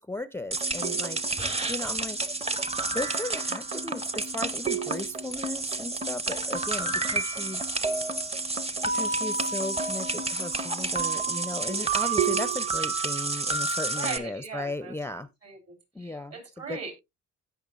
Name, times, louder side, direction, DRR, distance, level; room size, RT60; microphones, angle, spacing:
voice 1, 0.0-2.3 2.9-7.7 8.9-15.3 15.9-16.9, left 2 dB, 10° left, 0.4 m, -36 dB
sound 1, 0.5-14.2, right 3 dB, 20° right, 0.7 m, -29 dB
voice 2, 12.0-12.4 14.0-15.0 15.4-16.9, right 5 dB, 55° right, 3.8 m, -39 dB
16.5 x 5.8 x 2.4 m
cardioid pair, 90°, 30 cm